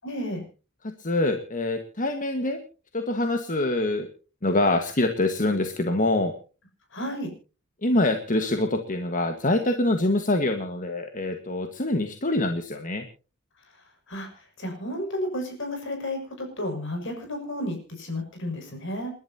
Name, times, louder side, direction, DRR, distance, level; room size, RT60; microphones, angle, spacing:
voice 1, 0.0-0.4 6.9-7.3 14.1-14.3 14.6-19.1, left 1 dB, 60° left, 4 dB, 6.8 m, -32 dB
voice 2, 0.8-2.6 2.9-4.1 4.4-6.3 7.8-13.1, left 2 dB, 40° left, 6 dB, 1.6 m, -25 dB
29.5 x 11.5 x 2.8 m, 0.35 s
head